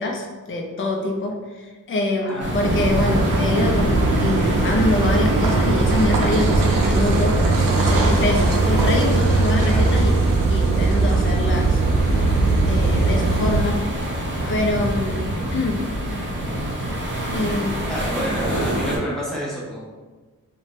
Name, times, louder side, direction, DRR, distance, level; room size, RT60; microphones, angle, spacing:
voice 1, 0.0-10.1 10.5-11.8 12.7-13.8 14.4-15.2 15.5-15.8 17.3-17.9, left 2 dB, 40° left, 2 dB, 0.4 m, -25 dB
sound 1, 2.4-19.0, right 1 dB, 35° right, 0.6 m, -27 dB
Car passing by / Idling / Accelerating revving vroom, 2.6-13.6, right 2 dB, 85° right, 0.5 m, -19 dB
voice 2, 17.9-19.8, equal, ahead, -7 dB, 0.7 m, -29 dB
2.6 x 2.1 x 3.0 m, 1.3 s
wide cardioid pair, 130°, 32 cm